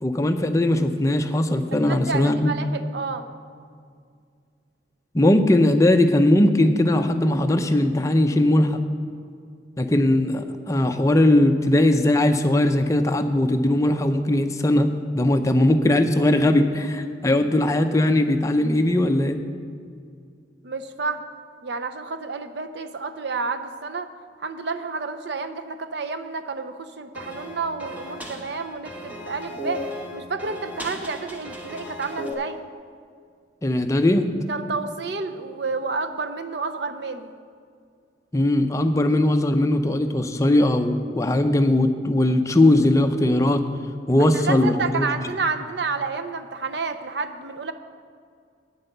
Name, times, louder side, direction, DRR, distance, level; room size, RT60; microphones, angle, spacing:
voice 1, 0.0-2.5 5.1-8.8 9.8-14.9 15.1-19.4 33.6-34.3 38.3-43.6 44.1-45.1, left 1 dB, 15° left, 7 dB, 0.5 m, -19 dB
voice 2, 1.9-3.3 20.6-21.2 21.6-24.1 24.4-29.8 30.1-32.6 34.5-37.3 44.2-47.7, right 4 dB, 65° right, 9 dB, 0.6 m, -30 dB
sound 1, 27.1-32.3, left 1 dB, 10° right, 1.1 m, -36 dB
9.0 x 8.1 x 6.6 m, 2.2 s
head